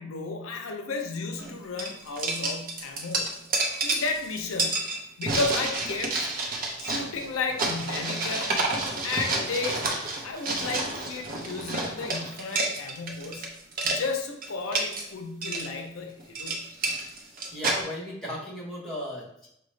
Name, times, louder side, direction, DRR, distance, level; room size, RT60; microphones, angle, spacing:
voice 1, 0.0-3.4 3.8-4.9 5.2-6.3 6.8-8.5 9.0-9.8 10.2-13.5 13.8-16.7, left 3 dB, 90° left, 4 dB, 0.5 m, -33 dB
sound 1, 1.4-1.5 1.8-13.5 13.7-14.0 14.4-15.1 15.4-15.7 16.2-17.8, right 2 dB, 45° right, 0.6 m, -29 dB
voice 2, 17.5-19.5, equal, ahead, -8 dB, 1.0 m, -36 dB
4.6 x 2.2 x 3.1 m, 0.76 s
head